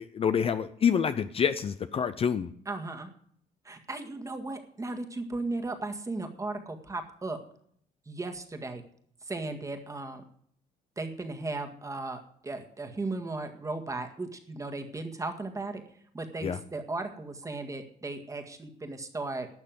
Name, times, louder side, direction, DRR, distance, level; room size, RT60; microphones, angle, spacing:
voice 1, 0.0-2.5 16.4-16.6, left 7 dB, 35° left, 11 dB, 0.6 m, -27 dB
voice 2, 2.7-3.1 3.7-7.4 8.1-8.8 9.3-10.2 11.0-15.8 16.1-19.5, right 2 dB, 20° right, 5 dB, 1.7 m, -36 dB
12.0 x 6.6 x 7.7 m, 0.63 s
cardioid pair, 110°, 17 cm